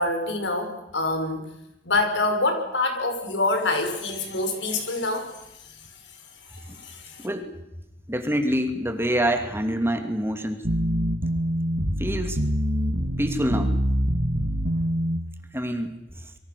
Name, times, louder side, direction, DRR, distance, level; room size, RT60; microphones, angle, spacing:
voice 1, 0.0-1.4 1.8-5.3 6.5-7.3, left 2 dB, 85° left, 5 dB, 5.7 m, -26 dB
voice 2, 8.1-10.7 12.0-12.4 13.2-13.8 15.5-15.9, equal, 15° right, 7 dB, 2.6 m, -26 dB
sound 1, 10.6-15.2, equal, 75° right, 2.9 m, -25 dB
27.0 x 24.0 x 6.9 m, 0.88 s
head